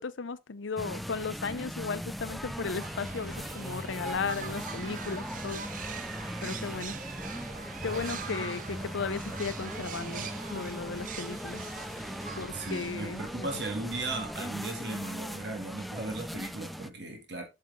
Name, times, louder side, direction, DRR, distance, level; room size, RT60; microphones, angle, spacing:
voice 1, 0.0-5.6 6.4-7.0 7.8-12.1 12.4-13.5, left 5 dB, 85° left, 0.6 m, -36 dB
sound 1, 0.8-16.9, equal, ahead, 0.3 m, -39 dB
sound 2, 2.3-13.9, right 6 dB, 45° right, 0.6 m, -43 dB
voice 2, 12.5-17.4, right 2 dB, 65° right, 2.1 m, -37 dB
7.7 x 6.5 x 3.6 m
head